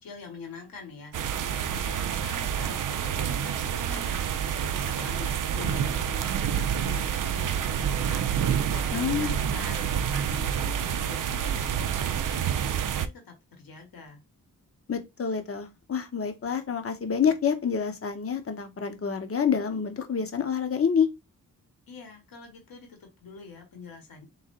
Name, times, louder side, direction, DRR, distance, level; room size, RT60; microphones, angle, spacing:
voice 1, 0.0-11.8 12.1-14.2 21.9-24.3, left 4 dB, 85° left, 1.8 m, -45 dB
sound 1, 1.1-13.1, right 8 dB, 65° right, 0.5 m, -28 dB
voice 2, 8.9-9.3 14.9-21.1, left 7 dB, 40° left, 0.9 m, -27 dB
3.8 x 3.2 x 3.7 m
wide cardioid pair, 140°, 34 cm